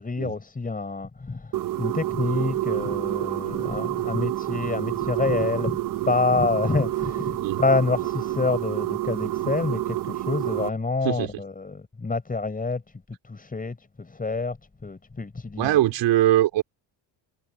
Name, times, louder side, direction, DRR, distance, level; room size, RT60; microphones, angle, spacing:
voice 1, 0.0-5.8 6.0-15.9, left 3 dB, 20° left, 6.1 m, -27 dB
sound 1, 1.5-10.7, right 14 dB, 50° right, 1.2 m, -28 dB
voice 2, 15.6-16.6, right 14 dB, 90° right, 3.5 m, -21 dB
cardioid pair, 130°, 42 cm